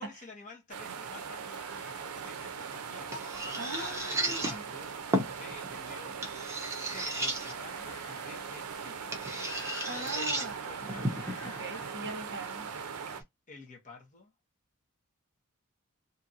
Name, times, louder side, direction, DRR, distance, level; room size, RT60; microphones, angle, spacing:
voice 1, 0.0-5.0 5.3-6.3 6.8-9.3 9.9-11.4 13.5-14.3, left 3 dB, 35° left, 1.0 m, -50 dB
sound 1, 0.7-13.2, right 6 dB, 70° right, 0.5 m, -40 dB
sound 2, 1.3-12.0, left 3 dB, 85° left, 1.3 m, -54 dB
sound 3, 2.2-13.2, right 1 dB, 10° right, 0.8 m, -37 dB
voice 2, 3.5-4.6 9.9-10.8 11.4-12.7, right 3 dB, 50° right, 0.9 m, -41 dB
2.8 x 2.5 x 2.7 m
head